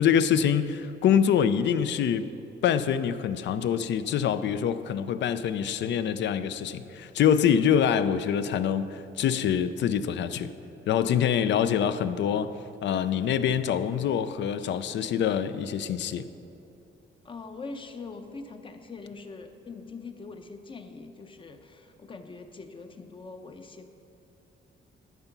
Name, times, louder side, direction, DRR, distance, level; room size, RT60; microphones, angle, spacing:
voice 1, 0.0-2.3 2.6-10.5 10.9-12.5 12.8-16.3, left 8 dB, 65° left, 12 dB, 0.5 m, -25 dB
voice 2, 17.2-23.9, left 4 dB, 25° left, 7 dB, 0.6 m, -42 dB
12.5 x 5.6 x 5.9 m, 2.9 s
cardioid pair, 140°, 20 cm